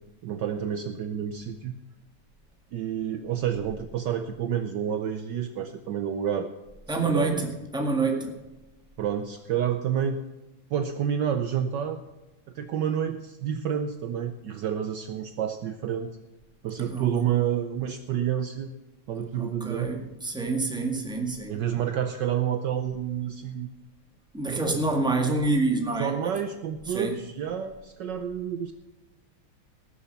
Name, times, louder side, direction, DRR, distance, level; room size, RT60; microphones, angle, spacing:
voice 1, 0.2-1.7 2.7-6.5 6.9-7.5 9.0-10.2 10.7-12.0 12.5-16.2 16.6-18.7 19.1-19.9 21.5-23.7 26.0-28.7, right 9 dB, 65° right, 8 dB, 1.2 m, -29 dB
voice 2, 6.9-8.4 16.8-17.1 19.3-21.6 24.3-26.1 26.9-27.2, right 3 dB, ahead, 2 dB, 1.5 m, -27 dB
19.0 x 7.1 x 5.7 m, 1.1 s
omnidirectional pair, 2.3 m